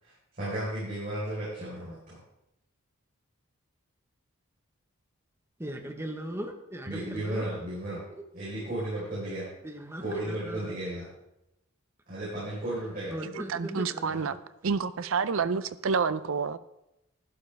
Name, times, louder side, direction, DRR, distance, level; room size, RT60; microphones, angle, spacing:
voice 1, 0.0-2.2 6.9-8.0 8.3-9.5 10.0-11.1 12.1-13.1 14.1-14.2, right 1 dB, 40° right, -9 dB, 4.1 m, -34 dB
voice 2, 5.6-7.5 7.9-8.0 9.6-10.8 13.1-14.3, equal, 10° right, 3 dB, 1.0 m, -38 dB
voice 3, 13.2-14.3 14.6-16.6, right 5 dB, 65° right, 14 dB, 0.5 m, -29 dB
12.0 x 11.5 x 3.4 m, 0.87 s
head